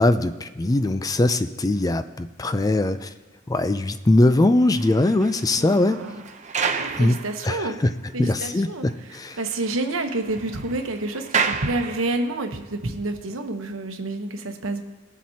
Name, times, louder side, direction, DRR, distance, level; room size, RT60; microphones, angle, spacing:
voice 1, 0.0-3.1 3.5-6.0 7.0-7.2 7.4-7.9 8.2-9.4, left 2 dB, 20° left, 11 dB, 0.3 m, -21 dB
sound 1, 4.4-8.1 8.4-8.5 8.9-9.0 9.2-12.5 13.2-13.4, right 5 dB, 35° right, 0.6 m, -32 dB
voice 2, 5.6-6.2 6.8-7.8 8.1-14.8, right 2 dB, 85° right, 6 dB, 1.0 m, -29 dB
20.5 x 7.4 x 2.8 m, 1.2 s
head